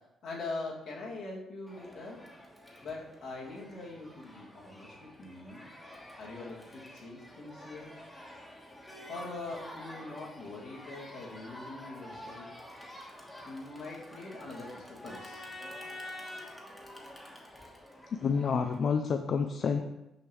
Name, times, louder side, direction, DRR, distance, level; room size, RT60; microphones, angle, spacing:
voice 1, 0.2-2.2 2.8-5.6 6.2-7.9 9.1-12.5 13.4-15.4, left 3 dB, 75° left, -6 dB, 2.1 m, -42 dB
Crowd, 1.7-18.8, left 1 dB, 10° left, 1.2 m, -48 dB
voice 2, 18.2-19.8, left 6 dB, 55° left, 7 dB, 0.3 m, -28 dB
6.4 x 5.1 x 3.1 m, 0.95 s
cardioid pair, 90°, 0 cm